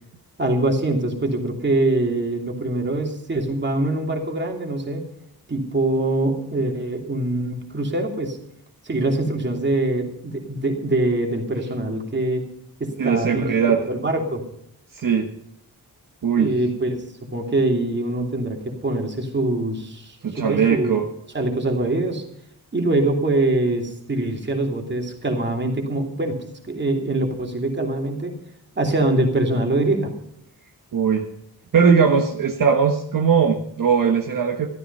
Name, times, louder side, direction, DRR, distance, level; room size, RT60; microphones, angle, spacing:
voice 1, 0.4-5.0 5.5-8.4 8.8-12.4 12.8-14.4 16.4-17.0 17.3-20.9 21.3-22.2 22.7-26.4 26.7-28.3 28.8-30.1, right 2 dB, 30° right, 2 dB, 2.8 m, -23 dB
voice 2, 13.0-13.8 14.9-15.3 16.2-16.6 20.2-21.1 30.9-31.2 31.7-34.7, right 6 dB, 60° right, 2 dB, 1.4 m, -19 dB
13.5 x 13.0 x 5.4 m, 0.73 s
wide cardioid pair, 160°, 38 cm